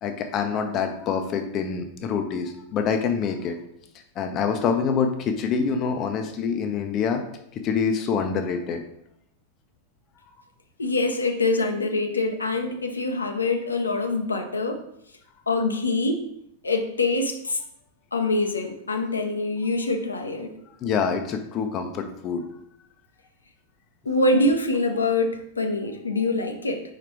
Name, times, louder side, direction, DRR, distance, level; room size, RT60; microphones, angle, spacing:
voice 1, 0.0-3.6 4.2-7.2 7.5-8.8 20.8-22.4, left 6 dB, 35° left, 5 dB, 0.7 m, -26 dB
voice 2, 10.8-14.8 15.5-16.3 16.6-17.6 18.1-20.5 24.0-26.8, left 2 dB, 75° left, 4 dB, 0.7 m, -24 dB
5.0 x 4.5 x 4.6 m, 0.74 s
figure-of-eight pair, 90°, 0 cm